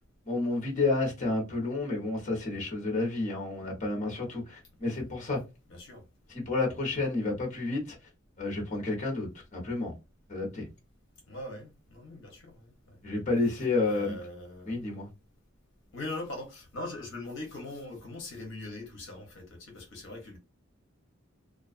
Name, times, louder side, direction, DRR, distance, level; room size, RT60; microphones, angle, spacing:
voice 1, 0.3-5.4 6.3-8.0 8.4-9.9 10.3-10.7 13.0-14.2 14.7-15.1, left 3 dB, 35° left, 0.9 m, -30 dB
voice 2, 5.7-6.0 11.3-13.0 13.5-14.9 15.9-20.4, left 2 dB, 60° left, 0.7 m, -41 dB
2.4 x 2.3 x 2.4 m
head